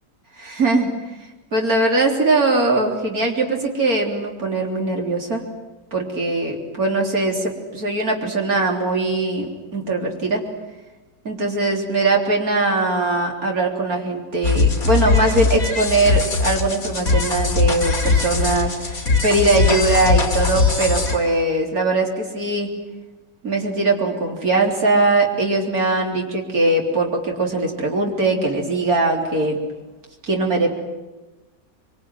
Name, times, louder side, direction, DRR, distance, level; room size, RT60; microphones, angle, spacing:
voice 1, 0.4-0.9 1.5-5.4 5.9-10.5 11.2-22.7 23.4-29.6 30.3-30.7, right 2 dB, 55° right, 1 dB, 4.1 m, -21 dB
sound 1, 14.4-21.2, left 4 dB, 55° left, 3.2 m, -20 dB
25.0 x 24.5 x 9.5 m, 1.1 s
omnidirectional pair, 1.9 m